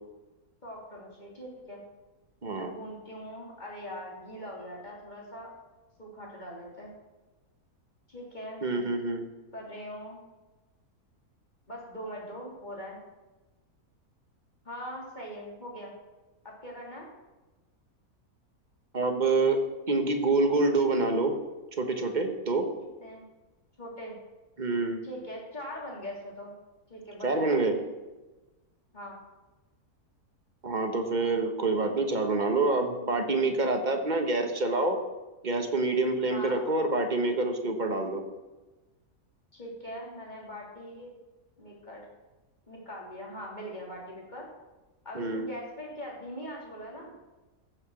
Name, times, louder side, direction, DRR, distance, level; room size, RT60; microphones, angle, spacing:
voice 1, 0.6-1.8 2.5-5.5 6.0-6.9 8.1-8.7 9.5-10.2 11.7-13.0 14.6-15.9 16.4-17.1 23.0-23.2 23.8-24.2 25.0-26.5 26.9-27.6 28.9-29.2 36.3-36.6 39.5-41.1 41.6-42.0 42.7-44.5 45.0-47.1, equal, 30° left, -3 dB, 3.4 m, -41 dB
voice 2, 2.4-2.7 8.6-9.3 18.9-21.3 21.8-22.7 24.6-25.0 27.2-27.8 30.6-35.0 35.4-38.2 45.1-45.5, right 3 dB, 30° right, 5 dB, 1.3 m, -27 dB
15.0 x 6.9 x 6.2 m, 1.1 s
omnidirectional pair, 1.6 m